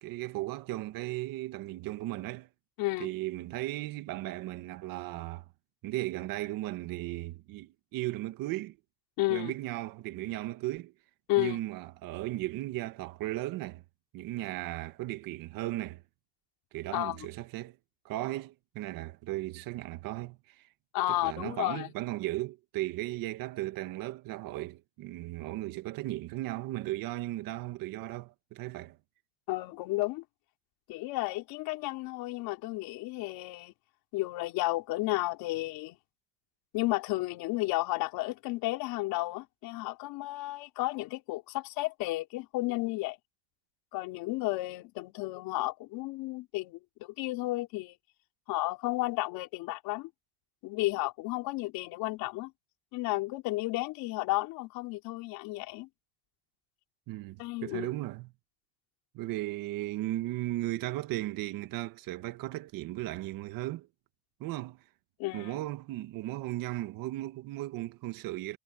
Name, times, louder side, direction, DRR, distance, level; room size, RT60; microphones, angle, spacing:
voice 1, 0.0-2.5 3.0-5.5 5.8-8.8 9.3-10.9 11.4-13.8 14.1-16.0 16.7-17.8 18.1-20.7 21.1-29.0 57.1-58.3 59.1-63.9 64.4-64.8 65.3-68.6, right 17 dB, 70° right, 1.8 m, -36 dB
voice 2, 2.8-3.1 9.2-9.5 11.3-11.6 16.9-17.2 20.9-21.9 29.5-30.2 30.9-33.7 34.1-36.0 36.7-43.2 43.9-48.0 48.5-50.1 50.6-52.5 52.9-55.9 57.4-58.0 65.2-65.6, left 19 dB, 80° left, 4.1 m, -32 dB
cardioid pair, 130°, 35 cm